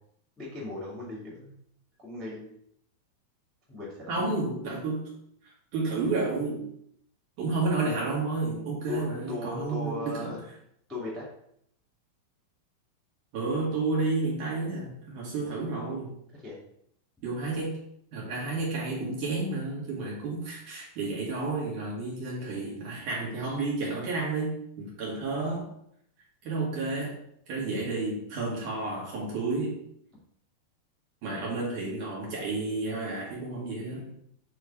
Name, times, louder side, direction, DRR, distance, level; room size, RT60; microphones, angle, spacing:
voice 1, 0.4-1.6 2.0-2.5 3.7-4.4 8.9-10.4 10.9-11.3 15.4-15.5 16.4-16.6, left 3 dB, ahead, -6 dB, 1.5 m, -37 dB
voice 2, 4.1-5.1 5.4-6.7 7.4-10.3 13.3-16.1 17.2-17.8 18.1-25.7 26.4-27.1 27.5-29.8 31.2-34.1, right 3 dB, 60° right, -5 dB, 2.7 m, -31 dB
8.2 x 3.1 x 4.7 m, 0.70 s
omnidirectional pair, 4.5 m